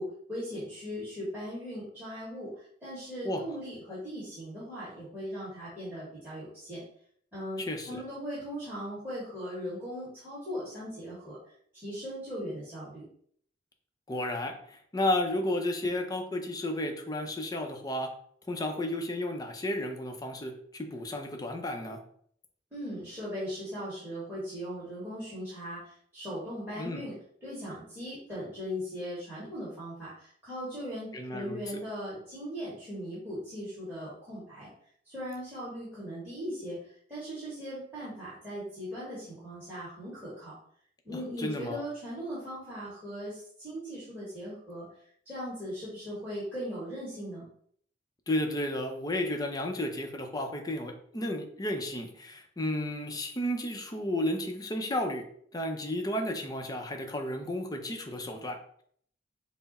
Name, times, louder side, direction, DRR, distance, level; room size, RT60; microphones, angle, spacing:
voice 1, 0.0-6.8 7.3-11.4 11.7-13.0 22.7-27.1 27.4-34.7 35.0-40.5 41.0-44.9 45.2-47.5, equal, 10° right, -11 dB, 1.7 m, -39 dB
voice 2, 7.7-8.0 14.1-18.1 18.5-22.0 26.8-27.1 31.1-31.6 41.4-41.8 48.3-55.2 55.5-58.8, left 1 dB, 20° left, 4 dB, 0.6 m, -32 dB
5.7 x 2.1 x 4.1 m, 0.62 s
head